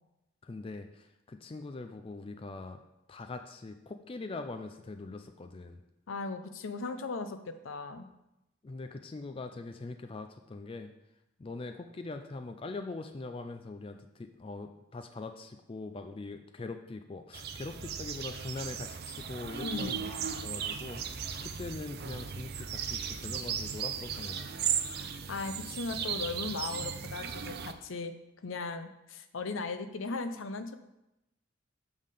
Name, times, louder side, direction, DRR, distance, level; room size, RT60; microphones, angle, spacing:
voice 1, 0.4-2.8 3.1-5.8 8.6-10.9 11.4-21.0 21.4-24.7, left 3 dB, 25° left, 6 dB, 0.3 m, -42 dB
voice 2, 6.1-8.1 19.6-20.0 24.9-28.1 28.4-30.7, left 3 dB, 75° left, 9 dB, 0.6 m, -37 dB
sound 1, 17.3-27.7, right 7 dB, 50° right, 0.5 m, -36 dB
7.5 x 3.6 x 6.4 m, 0.90 s
head